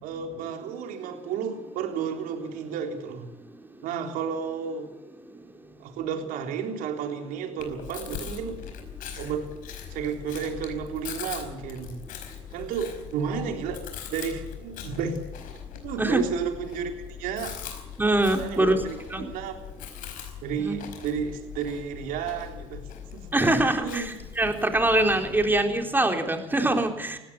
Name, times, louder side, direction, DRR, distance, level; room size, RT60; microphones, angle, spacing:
voice 1, 0.0-3.3 3.8-4.9 5.8-8.6 9.2-9.5 9.9-12.0 12.5-15.2 15.8-16.9 17.2-17.6 18.4-19.5 20.4-22.8 23.1-23.3 23.8-24.1, right 7 dB, 75° right, 4 dB, 3.6 m, -32 dB
Chewing mastication, 7.6-25.6, left 9 dB, 70° left, 4.9 m, -41 dB
voice 2, 18.0-18.8 19.1-19.2 20.6-20.7 23.3-24.0 24.4-27.2, right 2 dB, 15° right, 4 dB, 3.9 m, -23 dB
19.5 x 16.0 x 8.7 m, 0.98 s
supercardioid pair, 80°, 15 cm